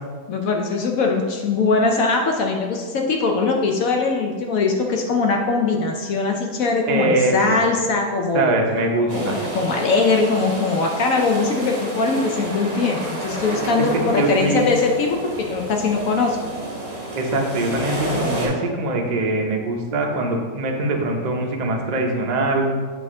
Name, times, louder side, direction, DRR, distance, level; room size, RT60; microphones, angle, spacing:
voice 1, 0.3-8.6 9.1-16.4, left 4 dB, 70° left, 2 dB, 0.9 m, -21 dB
voice 2, 6.9-7.6 8.3-9.4 13.9-14.6 17.1-22.6, right 2 dB, 60° right, 1 dB, 0.4 m, -22 dB
sound 1, 9.1-18.5, right 1 dB, 35° right, 1.8 m, -30 dB
8.4 x 3.5 x 3.6 m, 1.5 s
omnidirectional pair, 1.8 m